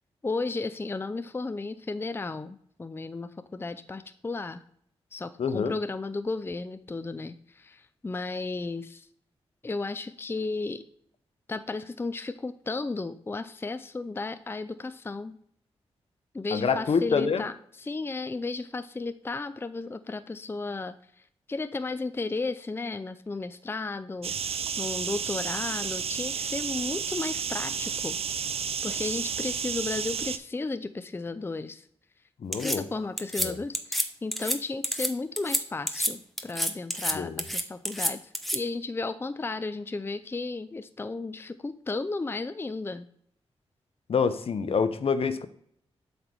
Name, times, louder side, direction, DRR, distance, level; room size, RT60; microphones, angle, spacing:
voice 1, 0.2-4.6 5.1-9.1 9.6-10.8 11.5-15.4 16.3-28.2 28.8-31.8 32.6-43.1, left 3 dB, 20° left, 11 dB, 0.4 m, -34 dB
voice 2, 5.4-5.8 16.5-17.4 32.4-32.9 33.4-33.6 37.1-37.4 44.1-45.5, left 5 dB, 60° left, 11 dB, 0.7 m, -26 dB
sound 1, 24.2-30.4, right 7 dB, 65° right, 0.5 m, -31 dB
sound 2, 32.5-32.8 33.2-33.5 33.7-34.1 34.3-34.6 34.8-35.1 35.4-35.6 35.9-36.1 36.4-37.1 37.4-38.6, equal, ahead, 0.8 m, -28 dB
8.0 x 3.4 x 6.0 m, 0.65 s
cardioid pair, 65°, 11 cm